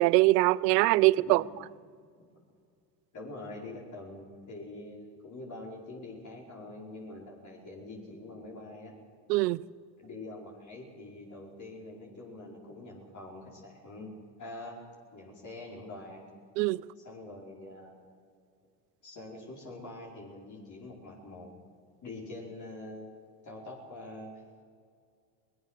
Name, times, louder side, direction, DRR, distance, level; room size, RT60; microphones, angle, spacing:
voice 1, 0.0-1.4 9.3-9.6 16.6-16.8, right 19 dB, 75° right, 0.6 m, -23 dB
voice 2, 1.0-1.3 2.2-2.3 3.1-8.9 10.0-14.8 15.1-16.3 17.0-17.9 19.0-21.5 22.0-24.3, left 2 dB, 35° left, 5.0 m, -45 dB
22.0 x 19.5 x 6.6 m
hypercardioid pair, 80°, 50 cm